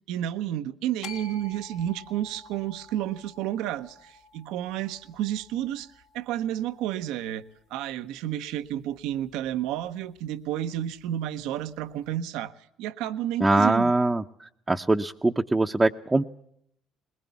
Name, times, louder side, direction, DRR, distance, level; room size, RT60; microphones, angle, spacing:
voice 1, 0.1-7.4 7.7-12.5 12.8-13.9, right 12 dB, 80° right, 11 dB, 0.9 m, -31 dB
sound 1, 1.0-7.3, left 4 dB, 80° left, 3.2 m, -48 dB
voice 2, 13.4-14.2 14.7-16.3, right 2 dB, 15° right, 2 dB, 0.8 m, -22 dB
21.0 x 19.5 x 7.0 m, 0.72 s
supercardioid pair, 85°, 0 cm